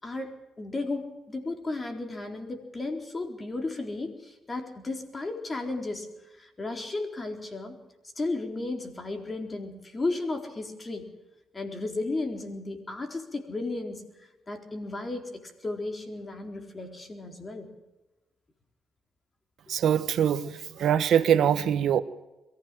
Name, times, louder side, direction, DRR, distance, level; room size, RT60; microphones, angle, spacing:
voice 1, 0.0-6.1 6.4-7.8 8.2-11.1 11.5-17.7, left 2 dB, 25° left, 5 dB, 4.1 m, -34 dB
voice 2, 19.7-22.0, right 9 dB, 70° right, 12 dB, 1.2 m, -23 dB
22.5 x 15.5 x 7.6 m, 1.0 s
cardioid pair, 90°, 0 cm